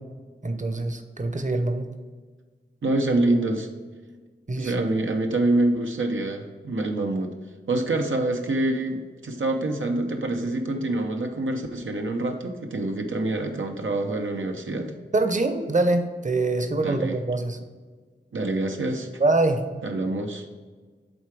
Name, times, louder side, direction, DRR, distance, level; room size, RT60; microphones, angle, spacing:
voice 1, 0.4-1.9 4.5-4.7 15.1-17.6 19.2-19.6, right 2 dB, 40° right, 7 dB, 0.7 m, -24 dB
voice 2, 2.8-3.7 4.6-7.4 7.7-14.9 16.8-17.2 18.3-19.1 19.8-20.5, right 2 dB, 90° right, 3 dB, 0.7 m, -26 dB
7.8 x 3.7 x 4.8 m, 1.4 s
wide cardioid pair, 50°, 20 cm